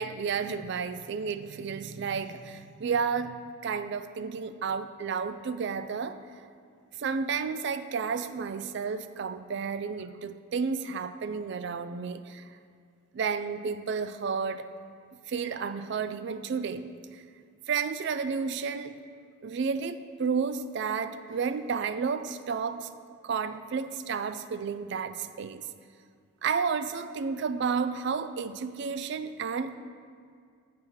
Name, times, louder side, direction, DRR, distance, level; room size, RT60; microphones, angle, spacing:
voice 1, 0.0-6.2 7.0-12.4 13.1-14.7 15.3-16.8 17.7-19.0 19.4-22.9 23.2-25.7 26.4-29.7, right 5 dB, 55° right, 11 dB, 0.3 m, -31 dB
7.6 x 4.7 x 5.6 m, 2.2 s
head